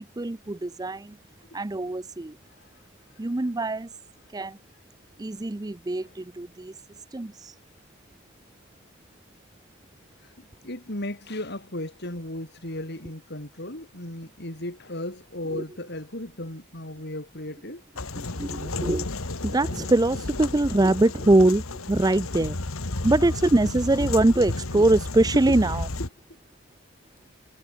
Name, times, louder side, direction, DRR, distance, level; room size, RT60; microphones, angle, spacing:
voice 1, 0.2-1.1 1.5-2.3 3.2-3.9 4.3-4.5 5.2-6.7 7.1-7.5 15.5-15.6 18.4-19.1 19.4-21.6 21.9-22.6 23.0-25.9, right 2 dB, 20° right, 0.5 m, -23 dB
voice 2, 10.6-17.8 26.0-26.1, left 1 dB, 50° left, 4.8 m, -35 dB
sound 1, 18.0-26.1, left 2 dB, 85° left, 1.9 m, -32 dB
head